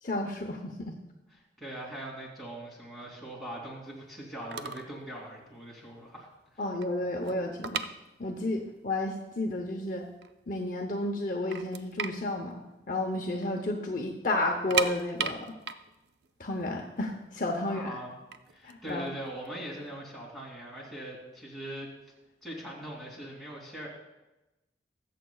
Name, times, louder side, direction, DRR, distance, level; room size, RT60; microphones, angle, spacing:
voice 1, 0.0-0.9 6.6-7.8 8.2-10.0 10.5-12.6 12.9-15.5 16.4-17.9 18.6-19.0, left 2 dB, 45° left, 1 dB, 0.8 m, -32 dB
voice 2, 1.3-6.3 6.5-6.6 17.6-18.1 18.5-21.9 22.4-23.9, right 1 dB, ahead, -5 dB, 2.8 m, -41 dB
sound 1, 4.2-4.3 4.5-5.0 5.2-5.5 6.0-6.1 6.3-8.6 8.9-9.0 9.6-9.7 10.1-10.8 11.1-11.2 11.5-13.5 13.8-13.9 14.5-17.4 18.1-19.8, right 6 dB, 65° right, 0.5 m, -35 dB
22.0 x 7.5 x 2.3 m, 1.0 s
head